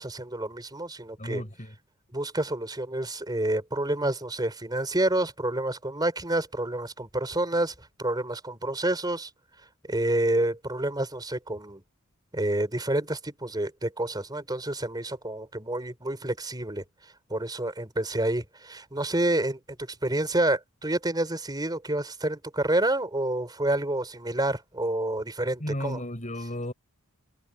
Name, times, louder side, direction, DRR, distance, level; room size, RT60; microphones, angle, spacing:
voice 1, 0.0-1.4 2.1-9.3 9.9-11.8 12.3-16.8 17.3-26.0, right 1 dB, 20° right, 4.3 m, -28 dB
voice 2, 1.2-1.8 25.6-26.7, left 1 dB, 35° left, 8.0 m, -34 dB
head